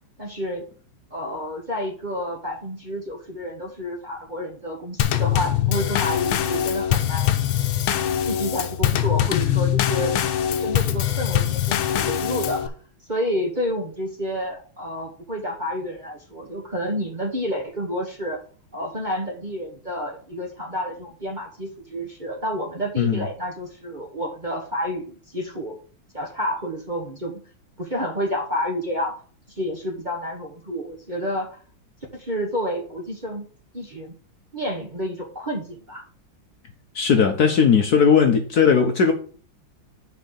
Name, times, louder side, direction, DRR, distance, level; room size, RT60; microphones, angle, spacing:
voice 1, 0.2-0.6 1.1-7.3 8.2-10.1 10.6-12.7 13.1-18.4 18.7-25.8 26.1-27.4 27.8-29.1 29.5-31.6 32.1-33.5 33.7-34.1 34.5-36.0, equal, 30° right, 1.1 m, -29 dB
Drum kit / Snare drum / Bass drum, 5.0-12.7, left 10 dB, 80° left, 1.6 m, -23 dB
voice 2, 36.9-39.1, left 6 dB, 60° left, 1.2 m, -17 dB
6.2 x 4.8 x 6.7 m
omnidirectional pair, 2.2 m